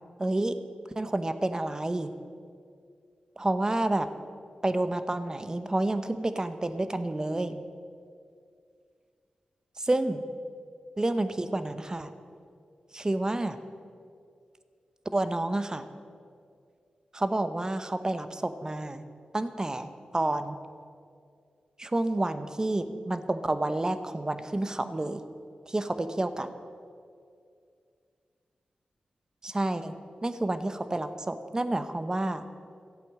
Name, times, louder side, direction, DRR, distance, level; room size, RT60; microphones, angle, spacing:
voice 1, 0.2-0.6 1.0-2.1 3.4-4.1 4.6-7.6 9.8-10.2 11.0-12.1 12.9-13.6 15.1-15.9 17.1-19.0 19.3-20.6 21.8-25.2 25.7-26.5 29.4-29.9 30.2-32.5, right 2 dB, 25° right, 10 dB, 0.9 m, -29 dB
14.0 x 8.4 x 7.5 m, 2.3 s
cardioid pair, 60°, 3 cm